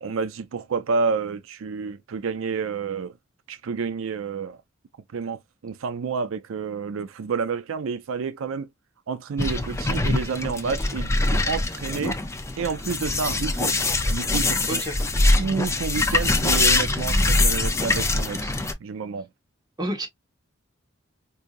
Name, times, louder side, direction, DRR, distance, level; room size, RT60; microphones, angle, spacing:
voice 1, 0.0-3.1 3.5-4.6 5.1-8.7 9.1-12.2 12.6-13.8 14.1-14.8 15.4-18.5 18.8-19.3, right 5 dB, 85° right, 0.4 m, -29 dB
sound 1, 9.4-18.7, left 2 dB, 15° left, 0.6 m, -23 dB
voice 2, 14.7-15.0 19.8-20.1, right 1 dB, 20° right, 1.4 m, -29 dB
4.8 x 2.7 x 2.5 m
head